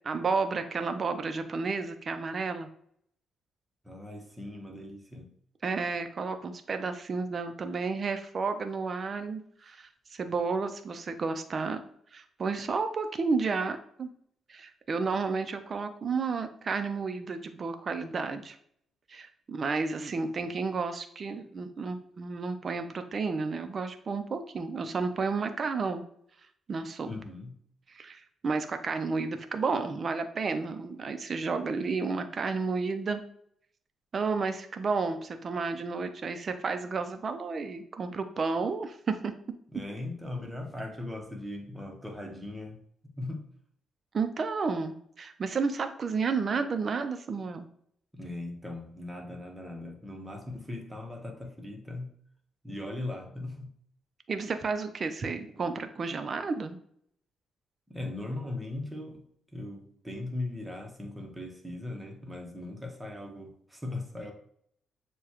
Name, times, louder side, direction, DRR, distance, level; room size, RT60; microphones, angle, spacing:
voice 1, 0.0-2.7 5.6-11.8 12.1-14.1 14.5-18.6 19.1-26.0 26.7-27.1 27.9-33.2 34.1-39.3 44.1-47.7 54.3-56.8, right 4 dB, 40° right, 8 dB, 0.5 m, -31 dB
voice 2, 3.8-5.3 27.1-27.5 39.7-42.8 43.2-43.4 48.1-52.1 52.6-53.7 57.9-59.2 59.5-64.3, left 2 dB, 10° right, 2 dB, 1.0 m, -39 dB
6.8 x 2.3 x 2.9 m, 0.65 s
cardioid pair, 90°, 0 cm